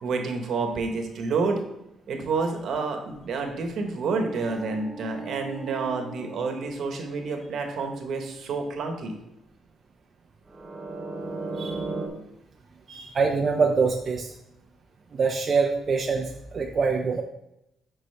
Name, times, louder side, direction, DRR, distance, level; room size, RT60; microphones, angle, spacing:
voice 1, 0.0-1.6 2.1-9.2, right 4 dB, 70° right, 4 dB, 1.2 m, -29 dB
sound 1, 3.1-8.0 10.5-12.1, right 2 dB, 20° right, 1.4 m, -38 dB
voice 2, 12.9-14.3 15.1-17.2, right 4 dB, 45° right, 1 dB, 0.7 m, -25 dB
9.7 x 4.3 x 3.4 m, 0.83 s
cardioid pair, 90°, 0 cm